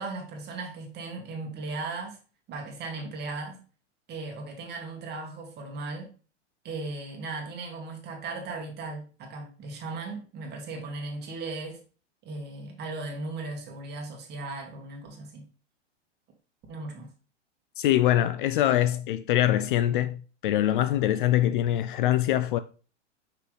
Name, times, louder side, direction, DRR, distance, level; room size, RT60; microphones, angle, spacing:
voice 1, 0.0-2.2 2.5-3.6 4.1-6.1 6.6-11.8 12.2-15.5 16.7-17.1, right 3 dB, 30° right, 1.8 m, -37 dB
voice 2, 17.8-22.6, left 13 dB, 45° left, 0.4 m, -24 dB
6.0 x 5.7 x 3.2 m
hypercardioid pair, 125°, 36 cm